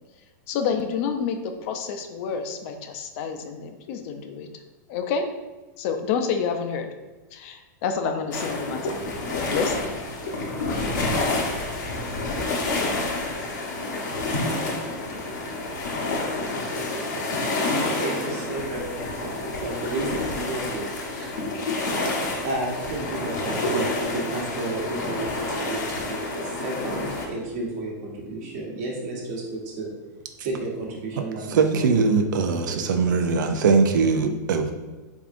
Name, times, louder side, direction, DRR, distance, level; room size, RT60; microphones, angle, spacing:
voice 1, 0.5-4.5 4.9-5.3 5.8-6.9 7.3-9.0 9.3-10.0, left 6 dB, 45° left, 6 dB, 0.4 m, -28 dB
sound 1, 8.3-27.3, left 2 dB, 85° left, 0.8 m, -28 dB
voice 2, 16.9-21.3 22.1-29.9 30.4-31.9 32.4-33.5, right 2 dB, 50° right, -1 dB, 1.0 m, -33 dB
voice 3, 31.5-34.7, right 4 dB, 90° right, 6 dB, 0.4 m, -21 dB
3.5 x 3.5 x 2.5 m, 1.2 s
supercardioid pair, 150°, 10 cm